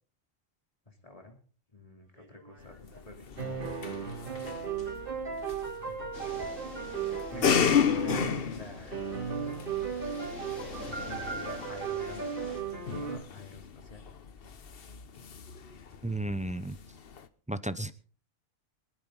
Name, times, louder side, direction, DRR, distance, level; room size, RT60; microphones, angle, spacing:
voice 1, 0.9-1.4 1.7-4.7 5.8-6.5 6.8-7.0 7.3-9.2 10.8-14.1, left 2 dB, 30° left, 4 dB, 2.9 m, -48 dB
sound 1, 2.2-3.1 3.4-8.5 8.9-13.2, right 6 dB, 45° right, 3.6 m, -36 dB
sound 2, 2.6-17.3, left 7 dB, 50° left, 1.1 m, -34 dB
sound 3, 6.1-12.6, left 2 dB, 85° left, 3.0 m, -46 dB
voice 2, 16.0-16.8 17.5-17.9, right 1 dB, 10° right, 13 dB, 0.4 m, -33 dB
24.0 x 9.5 x 3.9 m, 0.40 s
omnidirectional pair, 1.3 m